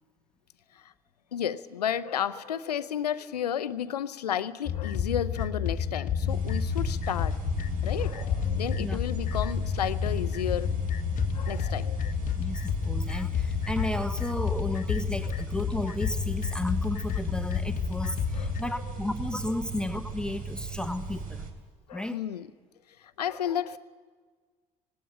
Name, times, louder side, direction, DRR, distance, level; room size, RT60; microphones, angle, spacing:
voice 1, 1.3-7.4 7.8-10.7 11.3-12.2 15.3-15.4 18.3-18.5 21.9-22.5 23.0-23.8, left 9 dB, 85° left, 0.6 m, -32 dB
sound 1, 4.7-18.6, left 8 dB, 40° left, 1.1 m, -30 dB
sound 2, 6.3-21.5, right 4 dB, 45° right, 3.3 m, -37 dB
voice 2, 12.4-21.4 21.9-22.2, left 1 dB, 5° left, 1.0 m, -33 dB
18.5 x 17.5 x 8.9 m
figure-of-eight pair, 60°, 20 cm